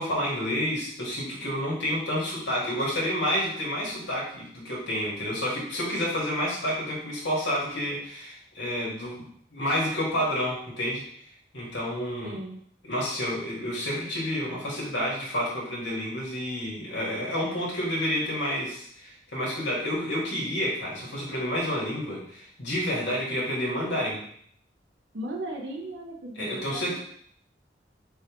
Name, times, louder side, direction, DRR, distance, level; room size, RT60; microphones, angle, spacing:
voice 1, 0.0-9.2 9.5-11.0 11.5-12.4 12.8-24.2 26.4-27.0, equal, 90° left, -5 dB, 1.8 m, -29 dB
voice 2, 12.2-12.6 25.1-27.0, right 1 dB, 70° right, 0 dB, 0.8 m, -36 dB
4.5 x 3.3 x 3.1 m, 0.65 s
head